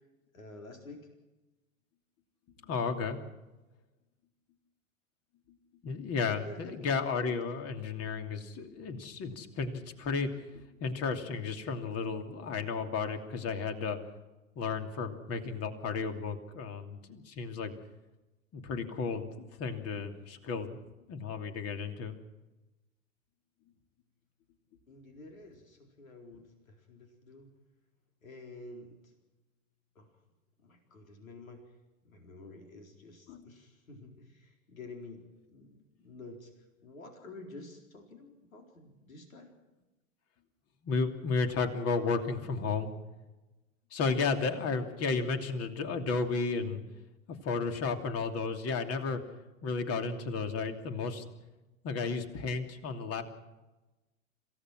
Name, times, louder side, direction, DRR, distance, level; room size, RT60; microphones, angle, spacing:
voice 1, 0.3-1.0 6.4-6.9 7.2-7.3 24.9-27.5 28.2-29.1 29.9-30.1 30.6-31.6 32.0-36.5 36.8-39.5, left 2 dB, 80° left, 3 dB, 4.4 m, -50 dB
voice 2, 2.6-3.2 5.8-14.0 14.5-17.7 18.5-20.8 21.1-22.2 33.3-33.4 40.8-42.9 43.9-46.8 47.4-49.2 49.6-51.2 51.8-53.2, left 4 dB, 35° left, 6 dB, 2.8 m, -33 dB
27.0 x 16.5 x 6.2 m, 1.1 s
hypercardioid pair, 95°, 40 cm